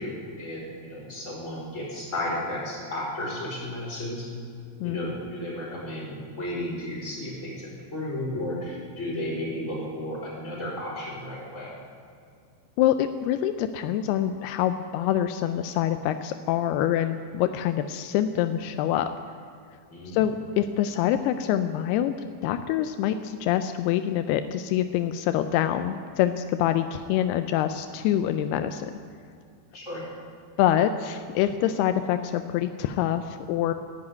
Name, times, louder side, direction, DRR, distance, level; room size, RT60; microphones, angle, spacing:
voice 1, 0.0-4.3 4.8-11.7 19.9-20.2 29.7-30.0, left 1 dB, 15° left, -5 dB, 4.9 m, -33 dB
voice 2, 12.8-19.1 20.1-22.1 22.4-28.9 30.6-33.7, left 11 dB, 90° left, 9 dB, 2.3 m, -25 dB
13.0 x 10.5 x 9.6 m, 2.3 s
omnidirectional pair, 5.2 m